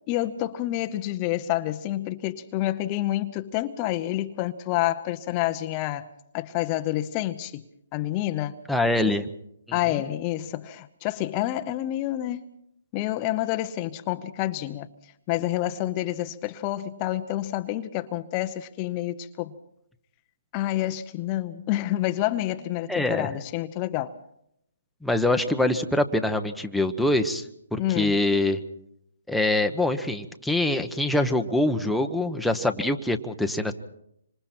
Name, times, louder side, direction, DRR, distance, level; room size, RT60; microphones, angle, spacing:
voice 1, 0.1-6.1 6.3-7.6 7.9-8.5 9.7-12.4 12.9-14.9 15.3-19.5 20.5-24.1 27.8-28.2, left 14 dB, 30° left, 9 dB, 0.8 m, -28 dB
voice 2, 8.7-9.3 9.7-10.0 22.9-23.3 25.0-27.4 27.7-28.6 29.3-33.7, left 1 dB, ahead, 4 dB, 1.0 m, -24 dB
26.0 x 26.0 x 4.4 m, 0.76 s
hypercardioid pair, 150°, 0 cm